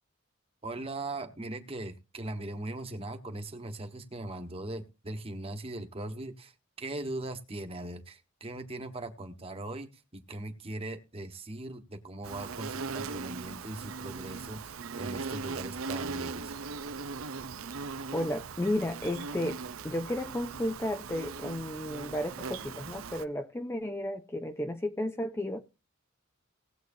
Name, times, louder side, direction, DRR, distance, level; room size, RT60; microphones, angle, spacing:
voice 1, 0.6-16.5, right 2 dB, 30° right, 1.3 m, -40 dB
Insect, 12.2-23.2, right 4 dB, 80° right, 0.6 m, -39 dB
voice 2, 18.1-25.6, left 1 dB, 10° left, 0.5 m, -33 dB
19.0 x 7.9 x 2.7 m
head